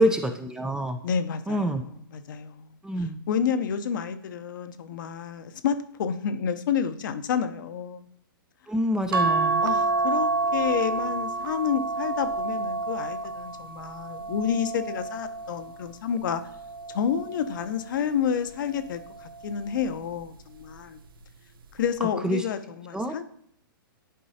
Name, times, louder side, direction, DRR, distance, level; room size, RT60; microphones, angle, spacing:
voice 1, 0.0-1.0 1.5-1.8 2.8-3.2 8.7-9.6 22.0-22.5 22.9-23.2, equal, 5° right, 7 dB, 0.4 m, -26 dB
voice 2, 1.0-2.7 3.3-8.1 9.6-16.4 16.9-21.0 21.7-23.2, left 7 dB, 60° left, 10 dB, 0.7 m, -29 dB
sound 1, 9.1-15.7 16.4-17.8 19.0-19.4 19.8-19.9, right 3 dB, 70° right, 0.7 m, -28 dB
11.0 x 4.6 x 2.8 m, 0.67 s
hypercardioid pair, 125°, 12 cm